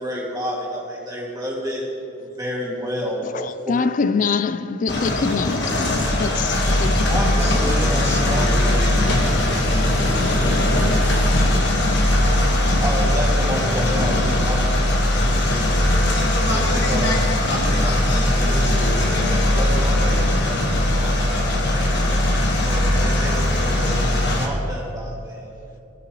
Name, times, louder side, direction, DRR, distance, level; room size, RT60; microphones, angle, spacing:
voice 1, 0.0-1.9 2.2-3.8 7.1-9.0 12.8-15.9 16.5-22.0 22.5-25.5, equal, 15° right, 2.1 m, -30 dB
voice 2, 3.2-7.6 10.4-10.5 11.7-11.8 13.5-13.6, left 5 dB, 35° left, 0.3 m, -25 dB
sound 1, 4.9-24.5, left 1 dB, 55° left, 1.4 m, -19 dB
voice 3, 7.4-10.3 18.5-19.0, equal, 10° left, 1.5 m, -34 dB
sound 2, 9.0-14.3, left 1 dB, 70° left, 2.7 m, -34 dB
19.0 x 7.9 x 3.1 m
head